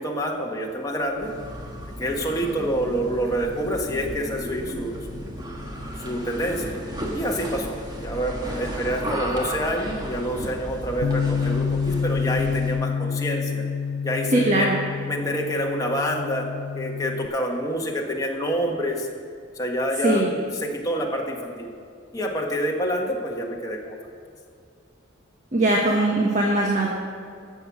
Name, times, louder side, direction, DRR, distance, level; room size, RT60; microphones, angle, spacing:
voice 1, 0.0-1.3 2.0-5.2 6.0-6.7 7.1-7.8 8.0-13.6 14.0-14.7 15.1-16.5 16.7-19.1 19.5-21.7 22.1-24.0, equal, 20° left, -1 dB, 1.4 m, -27 dB
sound 1, 1.1-12.8, equal, 20° right, 1.4 m, -34 dB
Bass guitar, 11.0-17.3, left 6 dB, 75° left, 0.4 m, -27 dB
voice 2, 14.3-14.8 20.0-20.3 25.5-26.9, right 1 dB, 40° right, -1 dB, 1.3 m, -20 dB
15.0 x 7.1 x 6.1 m, 2.3 s
head